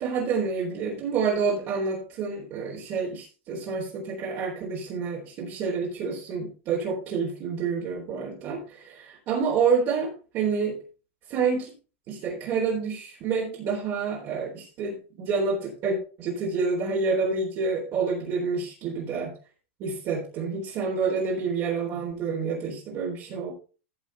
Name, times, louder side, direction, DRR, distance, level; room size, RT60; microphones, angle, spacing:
voice 1, 0.0-10.8 11.3-11.7 12.1-19.3 19.8-23.5, right 5 dB, 40° right, -3 dB, 3.6 m, -28 dB
14.5 x 6.7 x 3.5 m, 0.36 s
supercardioid pair, 145°, 7 cm